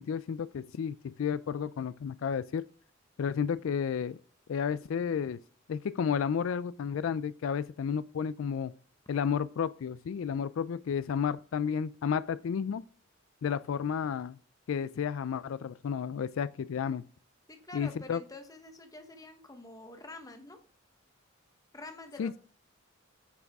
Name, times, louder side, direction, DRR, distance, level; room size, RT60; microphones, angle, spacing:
voice 1, 0.0-2.6 3.2-4.2 4.5-5.4 5.7-8.7 9.1-12.8 13.4-14.4 14.7-17.0 17.7-18.2 22.2-22.3, left 7 dB, 75° left, 0.3 m, -32 dB
voice 2, 17.5-20.6 21.7-22.4, left 2 dB, 20° left, 1.1 m, -47 dB
9.4 x 5.9 x 3.5 m
head